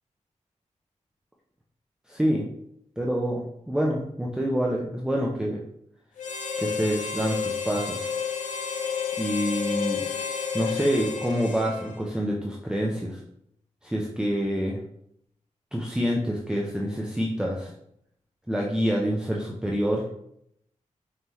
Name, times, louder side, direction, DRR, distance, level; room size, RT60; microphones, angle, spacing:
voice 1, 2.1-2.5 3.0-5.6 6.6-8.1 9.2-10.0 10.5-13.2 13.8-14.8 15.7-17.7 18.5-20.1, equal, 5° right, -2 dB, 0.6 m, -27 dB
Harmonica, 6.2-12.1, left 6 dB, 75° left, 0.6 m, -31 dB
5.2 x 2.8 x 3.1 m, 0.73 s
cardioid pair, 55°, 13 cm